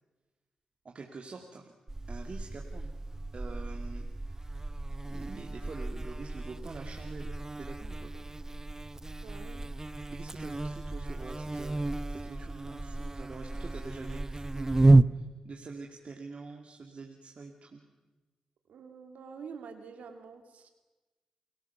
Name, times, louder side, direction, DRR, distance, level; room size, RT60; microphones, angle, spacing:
voice 1, 0.8-1.8 2.1-2.9 3.3-4.5 5.1-8.2 10.1-17.8, right 4 dB, 55° right, 2 dB, 2.3 m, -46 dB
Buzz, 1.9-15.0, right 2 dB, 25° right, 0.8 m, -31 dB
voice 2, 9.2-9.6 18.7-20.7, right 6 dB, 80° right, 6 dB, 2.1 m, -47 dB
29.0 x 18.0 x 7.0 m, 1.2 s
supercardioid pair, 40°, 2 cm